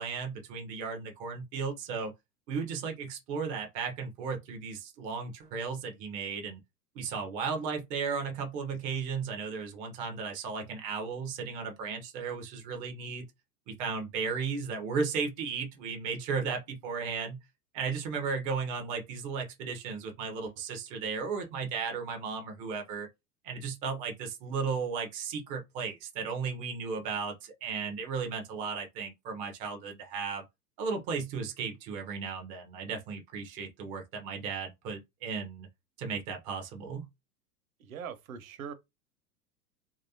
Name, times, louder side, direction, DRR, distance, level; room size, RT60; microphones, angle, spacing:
voice 1, 0.0-2.1 2.5-6.6 7.0-13.2 13.7-17.4 17.7-23.1 23.4-30.4 30.8-35.7 36.0-37.1, right 5 dB, 15° right, 0.4 m, -35 dB
voice 2, 37.8-38.7, right 7 dB, 60° right, 0.8 m, -41 dB
3.0 x 2.7 x 2.7 m
figure-of-eight pair, 95°, 48 cm